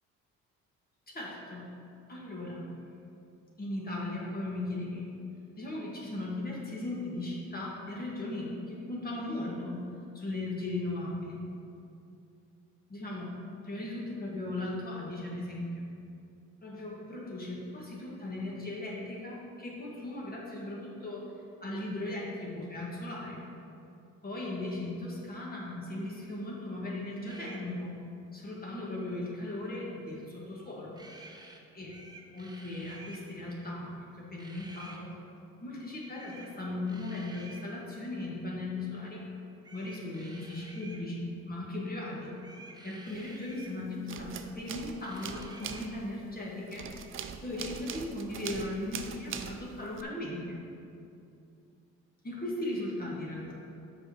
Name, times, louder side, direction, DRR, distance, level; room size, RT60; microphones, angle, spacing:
voice 1, 1.1-1.6 2.1-2.7 3.6-5.1 5.6-9.8 10.1-11.4 12.9-13.3 13.6-15.9 16.6-21.3 21.6-23.4 24.2-27.9 28.3-31.0 31.7-32.0 32.3-35.1 35.6-39.2 39.7-42.3 42.8-46.9 47.4-50.6 52.2-53.5, left 2 dB, 30° left, -4 dB, 1.8 m, -37 dB
sound 1, 27.3-27.6 30.9-31.6 31.9-33.2 34.4-35.0 36.2-36.5 36.9-37.7 39.6-41.1 42.4-43.8 45.0-45.9, right 2 dB, 15° right, 0.8 m, -51 dB
sound 2, 43.2-43.7 43.9-50.0, right 7 dB, 45° right, 0.5 m, -42 dB
7.1 x 5.1 x 4.5 m, 2.6 s
cardioid pair, 90°, 30 cm